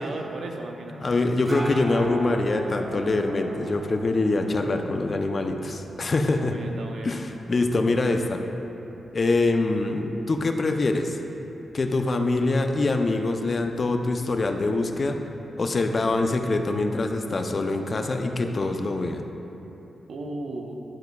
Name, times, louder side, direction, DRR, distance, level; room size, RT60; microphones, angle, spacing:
voice 1, 0.0-1.1 6.4-7.1 20.1-20.8, right 2 dB, 75° right, 2 dB, 0.6 m, -35 dB
voice 2, 1.0-6.6 7.0-8.4 9.1-11.2 11.7-15.2 15.6-19.2, left 2 dB, 45° left, 5 dB, 0.4 m, -24 dB
sound 1, 1.0-18.5, right 2 dB, 20° right, 0.5 m, -41 dB
10.5 x 4.5 x 2.2 m, 3.0 s
cardioid pair, 80°, 0 cm